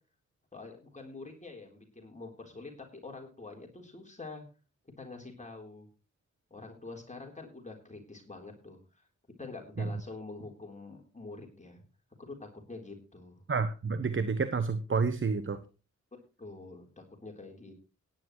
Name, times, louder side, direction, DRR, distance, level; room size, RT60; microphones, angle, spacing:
voice 1, 0.5-4.4 5.0-5.9 6.5-9.1 9.4-11.8 12.2-13.4 16.4-17.8, left 3 dB, 25° left, 1 dB, 3.7 m, -46 dB
voice 2, 13.5-15.6, right 4 dB, 40° right, 12 dB, 1.1 m, -29 dB
17.0 x 10.0 x 3.1 m, 0.32 s
cardioid pair, 55°, 31 cm